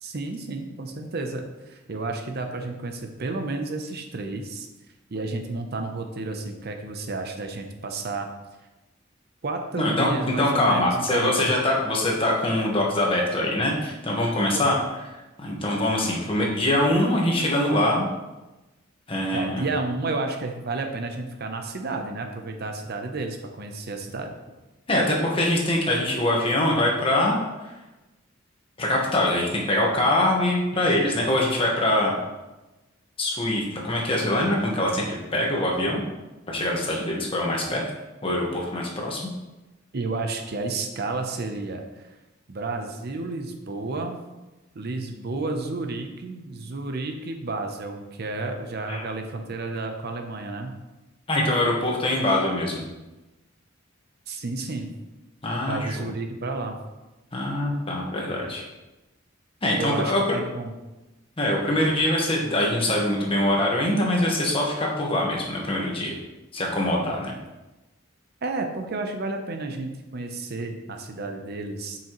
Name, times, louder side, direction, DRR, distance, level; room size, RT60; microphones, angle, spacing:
voice 1, 0.0-4.7 5.1-8.3 9.4-11.5 14.5-14.7 19.3-24.4 39.9-42.1 42.5-44.2 44.7-50.8 54.3-54.9 55.6-56.8 59.7-60.7 68.4-72.0, right 3 dB, 50° right, 5 dB, 0.7 m, -31 dB
voice 2, 9.8-10.1 10.4-14.8 15.1-18.1 19.1-19.6 24.9-27.4 28.8-32.1 33.2-35.0 35.3-36.0 36.5-37.9 38.2-39.2 48.9-49.0 51.3-52.8 55.4-56.0 57.3-58.6 59.6-60.4 61.4-66.1 66.5-67.3, left 1 dB, 25° left, -2 dB, 1.3 m, -23 dB
7.4 x 5.8 x 3.0 m, 1.1 s
head